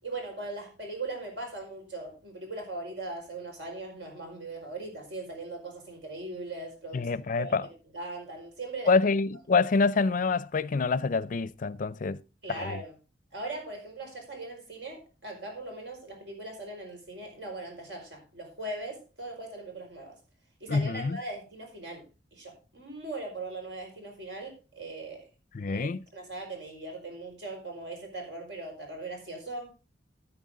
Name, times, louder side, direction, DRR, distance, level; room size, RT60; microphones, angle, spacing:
voice 1, 0.0-8.9 12.4-12.9 13.3-20.2 20.6-22.0 22.3-25.3 25.6-29.7, right 2 dB, 80° right, 4.9 m, -40 dB
voice 2, 6.9-7.7 8.9-12.2 12.5-12.8 20.7-21.2 25.5-26.0, left 4 dB, 50° left, 0.4 m, -26 dB
13.5 x 8.8 x 3.7 m
head